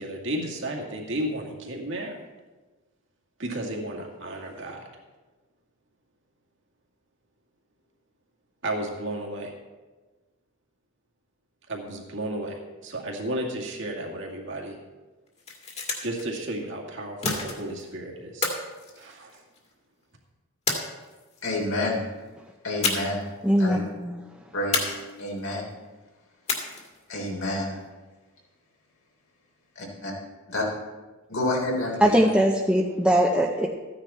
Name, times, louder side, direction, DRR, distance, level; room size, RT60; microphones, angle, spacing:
voice 1, 0.0-2.2 3.4-4.8 8.6-9.5 11.7-14.8 16.0-18.5 19.0-19.4, right 1 dB, 65° right, 0 dB, 2.2 m, -33 dB
sound 1, 15.3-16.3 17.2-17.9 18.4-19.7 20.7-21.4 22.8-23.3 23.6-23.7 24.7-25.5 26.5-27.0, left 3 dB, 30° left, 1.9 m, -30 dB
voice 2, 21.4-22.1 22.6-23.3 23.6-23.8 24.5-25.7 27.1-27.9 29.7-30.1 30.5-30.6 31.3-32.2, left 1 dB, 80° left, -2 dB, 3.5 m, -29 dB
voice 3, 23.4-24.2 32.0-33.7, equal, 5° right, -2 dB, 0.7 m, -21 dB
14.5 x 9.9 x 4.3 m, 1.3 s
head